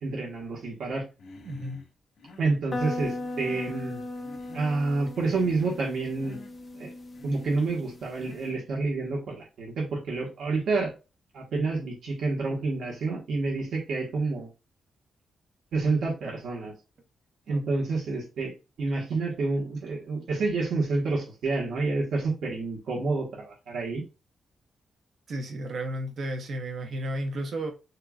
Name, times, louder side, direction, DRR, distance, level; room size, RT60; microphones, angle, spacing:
voice 1, 0.0-1.0 2.4-4.0 4.5-6.4 6.7-6.9 7.2-10.9 11.3-14.5 15.7-16.7 17.5-18.5 18.8-24.0, right 3 dB, 70° right, 1.6 m, -28 dB
Human voice, 1.2-1.9 2.2-2.6 3.1-3.9 4.1-4.9 5.1-5.9 6.2-6.5 7.1-7.7 8.2-8.7, left 3 dB, 70° left, 1.7 m, -49 dB
voice 2, 1.4-1.8 17.5-17.6 25.3-27.7, right 1 dB, 55° right, 1.2 m, -33 dB
sound 1, 2.7-8.5, left 2 dB, 25° left, 0.7 m, -38 dB
6.6 x 2.9 x 2.5 m
wide cardioid pair, 170°, 0 cm